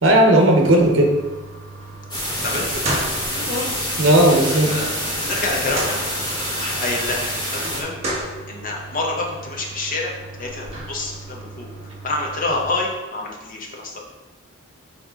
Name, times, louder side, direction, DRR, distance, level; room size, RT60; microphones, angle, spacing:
voice 1, 0.0-1.1 4.0-4.7, right 1 dB, 70° right, 1 dB, 1.1 m, -14 dB
sound 1, 0.6-12.6, right 1 dB, 35° right, 1.7 m, -34 dB
sound 2, 2.1-7.8, equal, 20° left, 1.6 m, -26 dB
voice 2, 2.4-3.1 3.3-3.7 4.4-5.9 6.5-8.0 8.5-10.1 10.4-11.7 12.0-14.0, left 2 dB, 45° left, -1 dB, 1.1 m, -27 dB
8.1 x 3.4 x 3.8 m, 1.2 s
head